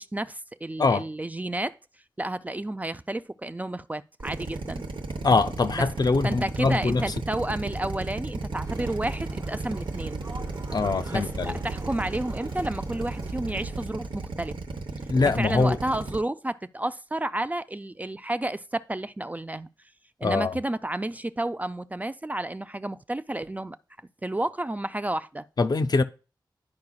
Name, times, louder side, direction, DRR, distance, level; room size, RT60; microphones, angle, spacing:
voice 1, 0.0-1.8 2.2-4.8 5.7-5.9 6.2-10.3 11.1-14.6 15.4-19.7 20.2-23.8 24.2-25.4, right 1 dB, 20° right, 0.3 m, -31 dB
Drill, 4.2-16.2, right 3 dB, 80° right, 0.8 m, -34 dB
voice 2, 5.2-7.0 10.7-11.6 15.1-15.8 20.2-20.6 25.6-26.0, left 3 dB, 55° left, 0.5 m, -23 dB
sound 1, 7.8-14.6, right 4 dB, 65° right, 1.1 m, -47 dB
sound 2, 8.6-13.8, right 2 dB, 40° right, 0.8 m, -40 dB
10.5 x 4.8 x 2.3 m
wide cardioid pair, 70°, 8 cm